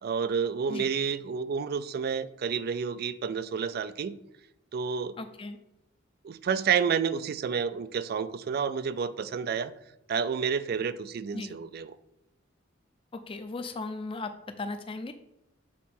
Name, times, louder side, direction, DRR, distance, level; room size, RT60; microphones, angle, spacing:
voice 1, 0.0-4.2 4.7-5.2 6.2-9.7 10.1-11.9, right 6 dB, 50° right, 14 dB, 0.3 m, -30 dB
voice 2, 5.2-5.6 11.3-11.5 13.1-14.3 14.6-15.1, left 3 dB, 25° left, 9 dB, 0.5 m, -36 dB
7.4 x 4.1 x 4.3 m, 0.84 s
head